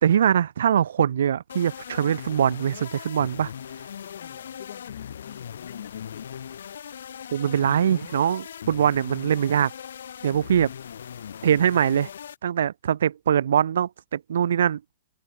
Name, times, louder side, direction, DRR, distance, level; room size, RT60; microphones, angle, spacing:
voice 1, 0.0-3.5 7.3-9.7 10.2-10.7 11.4-12.1 12.4-14.8, right 9 dB, 75° right, 0.5 m, -22 dB
sound 1, 1.5-12.4, left 8 dB, 85° left, 0.8 m, -39 dB
voice 2, 4.0-6.5, left 11 dB, 60° left, 3.6 m, -45 dB
hypercardioid pair, 165°, 0 cm